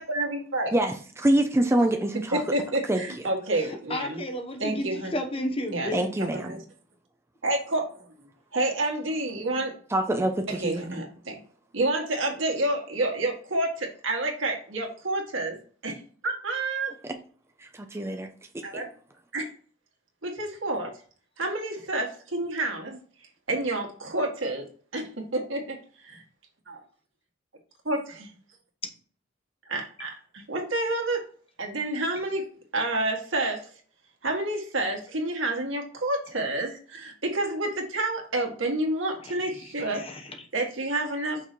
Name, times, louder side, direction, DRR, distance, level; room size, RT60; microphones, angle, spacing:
voice 1, 0.0-0.7 2.3-4.2 4.6-5.1 5.7-6.6 7.4-7.8 8.5-9.7 10.6-11.3 11.7-15.6 15.8-15.9 16.2-16.9 18.6-18.9 19.3-19.4 20.2-20.9 21.4-22.9 23.5-24.7 24.9-25.0 25.3-25.8 26.1-26.2 26.7-26.8 27.8-28.3 29.7-31.2 31.6-32.4 32.7-33.6 34.2-40.0 40.5-41.4, right 2 dB, 85° right, 1.8 m, -29 dB
voice 2, 0.7-2.4 2.9-3.0 5.9-6.6 9.9-11.0 17.6-18.3 18.5-18.8, right 1 dB, 15° right, 0.5 m, -25 dB
voice 3, 3.5-6.1 39.2-40.4, left 1 dB, 30° left, 1.0 m, -33 dB
5.9 x 4.1 x 4.6 m
head